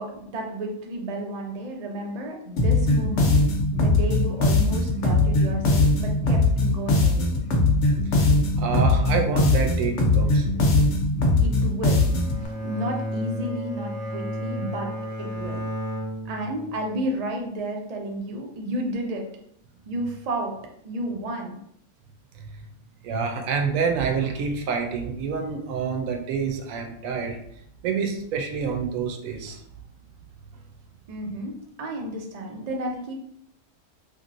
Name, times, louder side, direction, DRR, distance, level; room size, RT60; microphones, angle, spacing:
voice 1, 0.0-3.4 3.7-7.4 11.4-12.0 12.6-14.9 15.2-15.6 16.2-19.2 19.9-20.5 20.8-21.6 31.1-33.1, right 1 dB, 55° right, 1 dB, 0.4 m, -32 dB
sound 1, 2.6-12.4, left 2 dB, 70° left, 0.9 m, -20 dB
voice 2, 8.6-10.8 22.3-22.5 23.0-27.4 27.8-29.6, right 5 dB, 85° right, 4 dB, 1.0 m, -27 dB
Bowed string instrument, 11.8-17.1, equal, 35° right, 0.8 m, -33 dB
3.0 x 2.6 x 2.5 m, 0.70 s
omnidirectional pair, 1.3 m